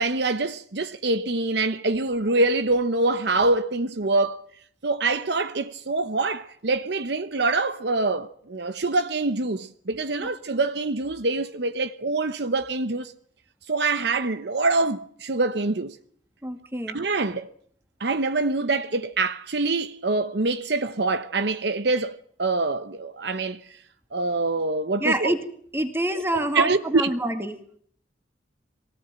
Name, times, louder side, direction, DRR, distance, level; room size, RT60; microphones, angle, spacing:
voice 1, 0.0-4.4 4.8-13.1 13.7-16.0 16.9-17.5 18.0-23.6 24.1-25.3 26.3-27.1, right 3 dB, 60° right, 0.9 m, -25 dB
voice 2, 16.4-17.0 25.0-25.4 25.7-27.6, right 1 dB, 15° right, 2.2 m, -26 dB
23.0 x 18.0 x 8.9 m
head